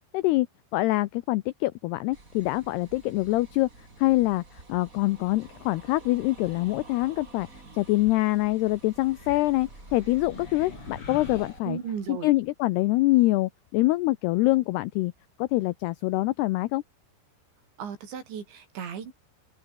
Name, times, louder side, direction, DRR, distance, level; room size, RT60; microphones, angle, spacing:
voice 1, 0.1-0.5 0.7-3.7 4.0-4.4 4.7-7.5 7.7-11.8 12.1-15.1 15.4-16.8, left 19 dB, 85° left, 2.3 m, -25 dB
sound 1, 2.1-11.6, right 3 dB, 20° right, 3.6 m, -49 dB
sound 2, 9.0-12.4, left 4 dB, 30° left, 4.5 m, -45 dB
voice 2, 11.6-12.3 17.8-19.1, right 7 dB, 70° right, 6.3 m, -35 dB
open air
omnidirectional pair, 5.5 m